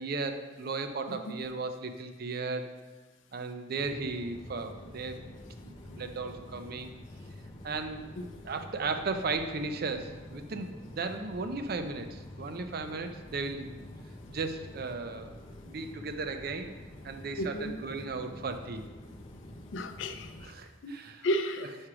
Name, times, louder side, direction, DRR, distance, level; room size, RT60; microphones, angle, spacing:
voice 1, 0.0-2.7 3.3-5.3 5.7-6.9 7.6-8.1 8.4-13.8 14.3-15.4 15.6-16.8 17.0-18.9 20.4-21.3, right 3 dB, 55° right, 7 dB, 0.5 m, -36 dB
sound 1, 3.8-20.5, left 1 dB, 30° left, 0.6 m, -48 dB
voice 2, 17.4-17.7 19.7-20.5 20.8-20.9 21.2-21.8, equal, 85° left, 9 dB, 0.5 m, -33 dB
4.9 x 4.4 x 4.9 m, 1.3 s
head